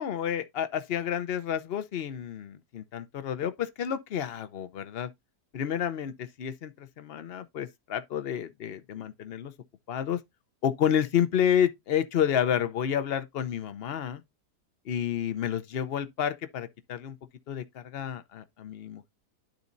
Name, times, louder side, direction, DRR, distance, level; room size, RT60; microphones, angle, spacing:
voice 1, 0.0-5.1 5.5-9.5 9.9-10.2 10.6-14.2 14.9-17.2 17.5-19.1, left 9 dB, 55° left, 0.7 m, -30 dB
12.0 x 4.1 x 2.6 m
omnidirectional pair, 1.7 m